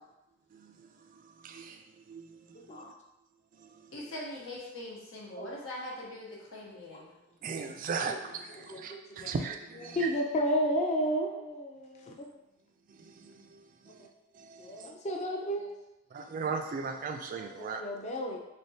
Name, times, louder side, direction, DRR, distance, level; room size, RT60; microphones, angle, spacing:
voice 1, 1.4-2.9 3.6-3.9 7.4-10.1 12.9-14.1 14.3-14.9 16.1-17.8, right 5 dB, 40° right, 6 dB, 0.3 m, -38 dB
voice 2, 3.9-7.1, left 1 dB, 85° left, -3 dB, 1.1 m, -42 dB
voice 3, 8.7-9.3 9.8-12.3 14.6-15.7 17.5-18.4, equal, 35° left, 0 dB, 0.5 m, -32 dB
3.7 x 3.3 x 2.7 m, 0.89 s
head